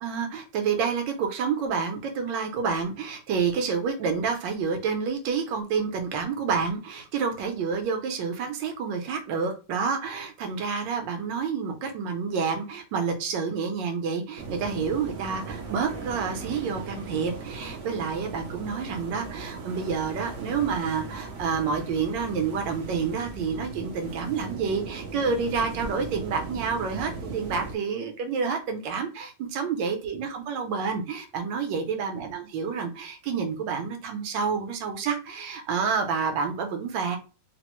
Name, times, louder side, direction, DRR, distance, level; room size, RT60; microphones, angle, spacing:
voice 1, 0.0-37.2, right 5 dB, 80° right, 5 dB, 1.4 m, -29 dB
sound 1, 14.4-27.8, right 4 dB, 65° right, 0.7 m, -38 dB
3.7 x 2.1 x 3.0 m, 0.32 s
omnidirectional pair, 2.0 m